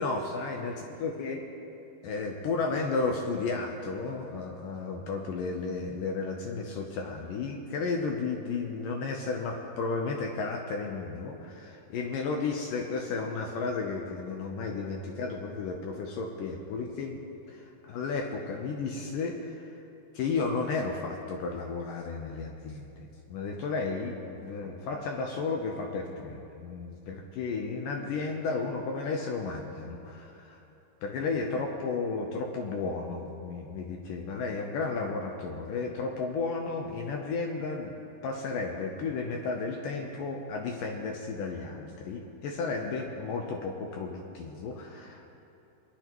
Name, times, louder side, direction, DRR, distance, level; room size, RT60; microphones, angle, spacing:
voice 1, 0.0-1.4 2.0-19.8 20.1-30.6 31.0-38.0 38.2-45.3, left 4 dB, 75° left, 2 dB, 2.0 m, -33 dB
23.5 x 10.5 x 3.0 m, 2.8 s
omnidirectional pair, 4.7 m